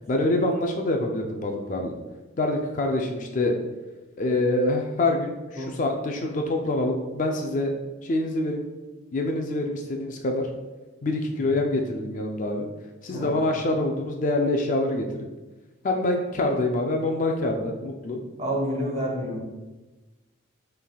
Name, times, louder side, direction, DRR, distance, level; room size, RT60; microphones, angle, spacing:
voice 1, 0.1-1.9 2.4-3.5 4.2-7.7 8.0-8.6 9.1-10.5 11.0-12.7 13.0-15.3 15.8-18.2, left 2 dB, 40° left, 3 dB, 0.3 m, -25 dB
voice 2, 18.4-19.4, equal, 35° right, -2 dB, 1.0 m, -28 dB
5.6 x 3.3 x 2.3 m, 1.2 s
head